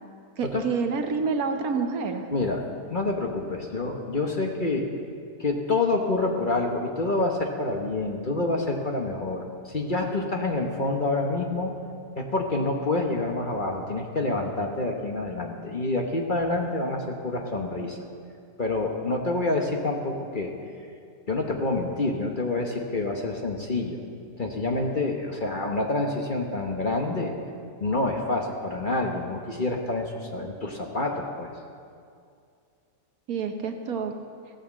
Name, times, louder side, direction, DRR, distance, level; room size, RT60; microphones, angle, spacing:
voice 1, 0.4-2.2 33.3-34.1, right 5 dB, 70° right, 6 dB, 1.4 m, -28 dB
voice 2, 2.3-4.9 5.4-11.7 12.2-18.0 18.6-20.5 21.3-24.0 24.4-27.4 27.8-31.5, left 2 dB, 35° left, 2 dB, 1.1 m, -27 dB
15.5 x 9.3 x 7.4 m, 2.4 s
omnidirectional pair, 1.7 m